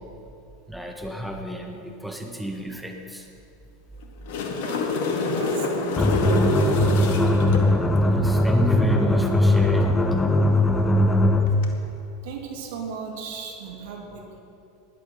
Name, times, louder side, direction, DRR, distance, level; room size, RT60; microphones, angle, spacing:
voice 1, 0.7-3.3 8.0-10.1, right 1 dB, ahead, 2 dB, 1.6 m, -29 dB
sound 1, 4.0-7.6 11.5-11.6, left 3 dB, 60° left, 2.1 m, -26 dB
voice 2, 4.6-4.9 5.2-6.1 12.2-14.2, right 5 dB, 60° right, 1 dB, 2.7 m, -37 dB
sound 2, 6.0-11.6, left 1 dB, 15° left, 1.2 m, -20 dB
18.0 x 11.5 x 5.7 m, 2.7 s
figure-of-eight pair, 85°, 0 cm